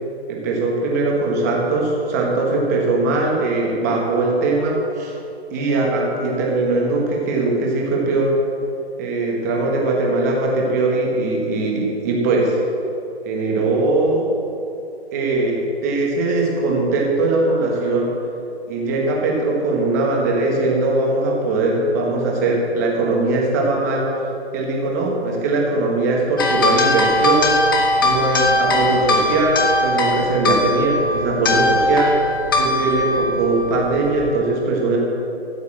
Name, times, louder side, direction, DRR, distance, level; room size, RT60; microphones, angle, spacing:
voice 1, 0.3-5.1 5.5-8.3 9.0-12.6 13.2-14.3 15.1-18.1 18.7-24.1 24.5-27.6 28.0-32.2 32.6-35.0, right 2 dB, 15° right, -2 dB, 1.5 m, -20 dB
sound 1, 26.4-34.3, left 2 dB, 20° left, 0.8 m, -20 dB
14.5 x 7.2 x 7.4 m, 2.6 s
hypercardioid pair, 170°, 33 cm